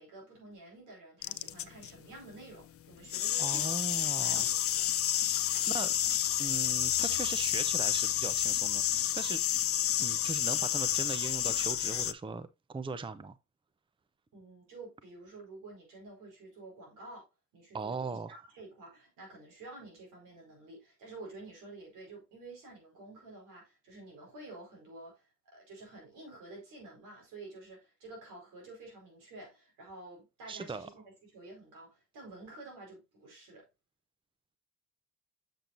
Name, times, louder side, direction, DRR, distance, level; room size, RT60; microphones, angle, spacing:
voice 1, 0.0-4.9 5.5-5.7 14.3-17.3 17.5-33.7, right 2 dB, 90° right, 4.7 m, -50 dB
sound 1, 1.2-1.9 3.1-12.1, left 12 dB, 50° left, 0.5 m, -30 dB
voice 2, 3.4-4.5 5.7-5.9 6.4-9.4 10.0-13.4 17.7-18.4 30.5-30.9, right 4 dB, 15° right, 0.6 m, -39 dB
7.5 x 7.1 x 2.5 m
cardioid pair, 90°, 30 cm